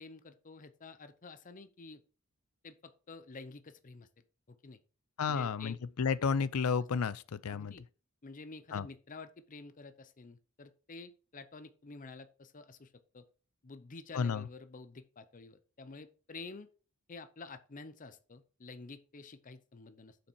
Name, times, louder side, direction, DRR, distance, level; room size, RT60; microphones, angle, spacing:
voice 1, 0.0-2.0 2.6-4.1 4.5-4.8 5.3-5.8 7.5-7.8 8.2-13.3 13.6-16.7 17.1-20.2, left 3 dB, 40° left, 0.7 m, -50 dB
voice 2, 5.2-7.8 8.7-8.9 14.1-14.5, left 6 dB, 85° left, 0.5 m, -32 dB
7.1 x 5.7 x 4.5 m
head